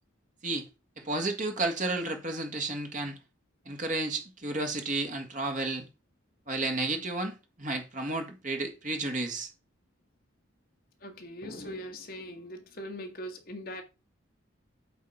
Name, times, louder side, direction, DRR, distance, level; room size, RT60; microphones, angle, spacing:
voice 1, 1.0-3.2 3.7-5.9 6.5-9.5, right 2 dB, 40° right, 1.8 m, -32 dB
voice 2, 11.0-13.8, equal, 50° left, 1.5 m, -41 dB
8.4 x 4.2 x 5.7 m
head